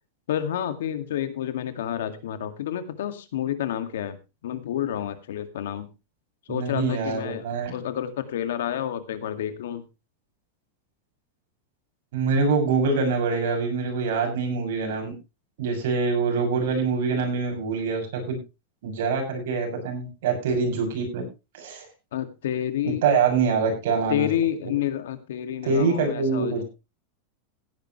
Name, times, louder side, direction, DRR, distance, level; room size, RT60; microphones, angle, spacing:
voice 1, 0.3-4.2 4.4-5.9 6.5-7.5 7.7-9.8 22.1-23.0 24.1-26.6, left 10 dB, 85° left, 10 dB, 2.1 m, -29 dB
voice 2, 6.5-7.8 12.1-15.1 15.6-18.4 18.8-21.2 21.5-21.9 22.8-24.3 25.6-26.6, right 4 dB, 70° right, 2 dB, 7.0 m, -25 dB
17.0 x 10.5 x 3.2 m, 0.27 s
supercardioid pair, 155°, 0 cm